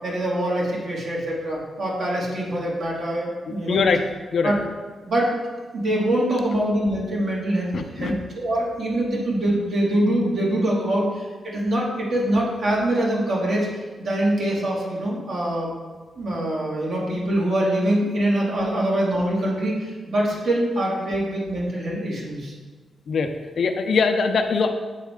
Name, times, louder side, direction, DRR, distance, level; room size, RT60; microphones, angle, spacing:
voice 1, 0.0-3.8 4.4-4.6 5.0-5.4 5.7-15.7 16.2-22.5, right 1 dB, 60° right, -4 dB, 1.7 m, -24 dB
voice 2, 3.7-4.0 4.3-4.5 7.7-8.1 23.1-23.3 23.6-24.7, left 5 dB, 65° left, 5 dB, 0.5 m, -21 dB
7.4 x 4.1 x 3.6 m, 1.4 s
wide cardioid pair, 120°, 0 cm